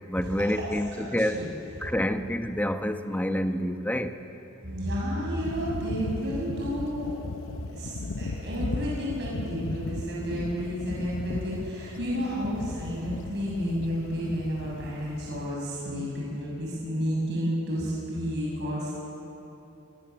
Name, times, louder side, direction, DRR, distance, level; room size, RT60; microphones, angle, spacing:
voice 1, 0.1-1.5 1.8-4.1, equal, 10° left, 7 dB, 1.0 m, -28 dB
voice 2, 4.6-7.2 7.7-18.9, equal, 55° right, -5 dB, 6.7 m, -31 dB
sound 1, 5.3-15.5, left 2 dB, 60° left, 0.8 m, -36 dB
27.0 x 23.5 x 7.1 m, 3.0 s
head